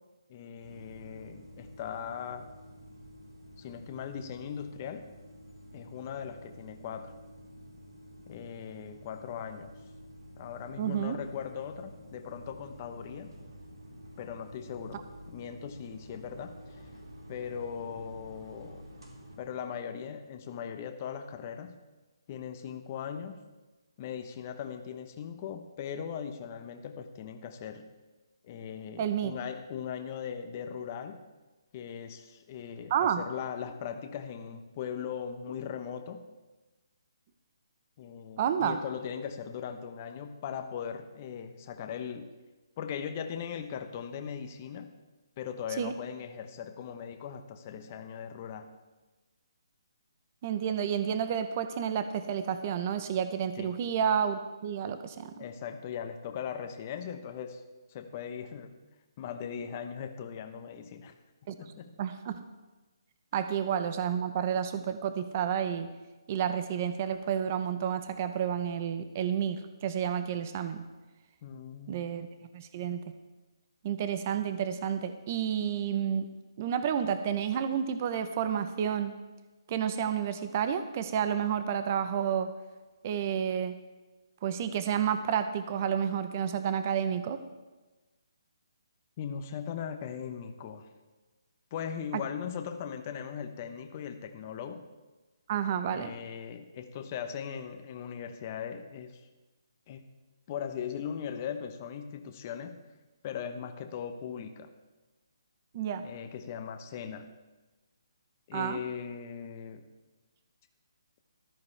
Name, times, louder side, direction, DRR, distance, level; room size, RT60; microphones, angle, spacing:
voice 1, 0.3-2.5 3.6-5.0 5.7-7.1 8.3-9.7 10.4-13.3 14.2-16.9 17.3-18.9 19.4-21.7 22.3-23.3 24.0-27.9 28.4-31.2 31.7-36.2 38.0-42.3 42.8-44.9 45.4-48.7 53.6-53.7 55.4-57.6 57.9-58.8 59.2-61.1 61.6-61.9 71.4-72.0 89.2-90.9 91.7-94.8 95.9-99.2 99.9-100.0 100.5-102.8 103.2-104.7 106.0-107.3 108.5-109.8, left 8 dB, 25° left, 6 dB, 0.8 m, -39 dB
sound 1, 0.6-19.4, equal, 80° right, 3.9 m, -50 dB
voice 2, 10.8-11.2 29.0-29.3 32.9-33.2 38.4-38.8 45.8-45.9 50.4-55.3 61.5-61.6 62.0-62.4 63.3-65.9 66.3-70.8 71.9-72.3 72.5-73.0 73.8-76.3 76.6-79.1 79.7-82.5 83.0-83.7 84.4-87.4 92.1-92.2 95.5-96.1 105.7-106.0 108.5-108.8, right 8 dB, 30° right, 10 dB, 0.6 m, -30 dB
14.5 x 13.5 x 3.3 m, 1.2 s
hypercardioid pair, 165°, 3 cm